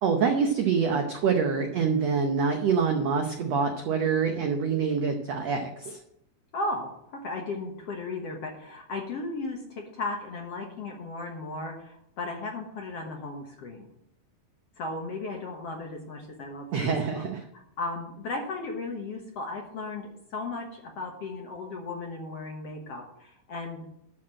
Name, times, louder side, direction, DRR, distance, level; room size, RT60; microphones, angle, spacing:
voice 1, 0.0-6.0 16.7-17.4, right 5 dB, 85° right, 4 dB, 1.4 m, -26 dB
voice 2, 6.5-13.9 14.8-17.2 17.8-23.8, left 2 dB, 60° left, 1 dB, 1.7 m, -35 dB
12.5 x 4.4 x 7.5 m, 0.78 s
omnidirectional pair, 4.3 m